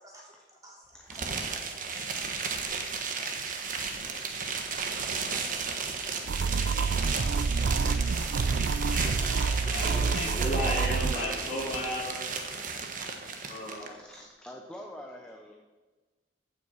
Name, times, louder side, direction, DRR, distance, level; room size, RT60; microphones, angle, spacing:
voice 1, 0.0-2.6 2.9-8.8 9.1-11.7 13.2-13.3 13.9-14.2, equal, 20° right, -3 dB, 3.0 m, -51 dB
sound 1, 1.1-13.9, right 5 dB, 50° right, 1.3 m, -34 dB
voice 2, 1.9-2.2 4.5-4.6 8.5-8.7 13.9-15.5, equal, 5° left, 1 dB, 0.9 m, -47 dB
sound 2, 6.3-11.2, right 4 dB, 85° right, 0.5 m, -28 dB
voice 3, 9.6-12.2 13.5-13.9, left 1 dB, 40° left, -6 dB, 4.6 m, -34 dB
15.0 x 6.2 x 5.7 m, 1.3 s
head